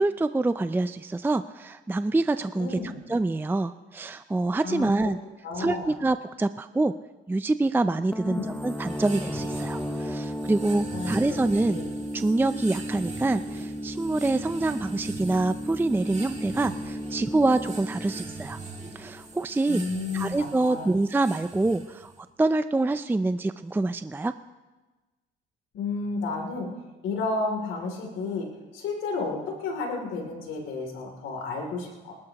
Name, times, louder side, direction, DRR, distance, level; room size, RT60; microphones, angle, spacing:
voice 1, 0.0-5.2 5.6-6.9 7.3-11.8 12.1-18.6 18.9-19.8 20.1-22.1 22.4-24.3, right 2 dB, 10° right, 11 dB, 0.4 m, -26 dB
voice 2, 2.5-3.0 4.6-5.1 5.4-6.0 8.2-8.5 10.9-11.4 11.6-11.9 19.7-20.9 25.7-26.7 27.0-28.5 28.7-32.2, left 3 dB, 90° left, 1 dB, 3.0 m, -32 dB
sound 1, 8.1-19.6, equal, 5° left, 0.9 m, -35 dB
sound 2, 8.3-22.2, right 4 dB, 35° right, 2.1 m, -43 dB
24.5 x 13.0 x 3.0 m, 1.2 s
cardioid pair, 90°, 20 cm